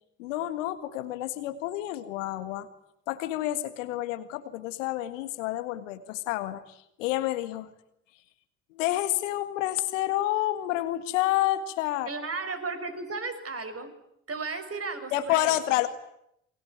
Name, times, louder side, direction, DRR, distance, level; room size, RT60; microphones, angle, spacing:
voice 1, 0.2-2.7 3.1-7.7 8.7-12.1 15.1-15.9, left 15 dB, 80° left, 11 dB, 1.9 m, -29 dB
voice 2, 12.0-13.9 14.3-15.6, right 4 dB, 40° right, 8 dB, 6.6 m, -34 dB
28.0 x 22.5 x 9.4 m, 0.78 s
hypercardioid pair, 50°, 37 cm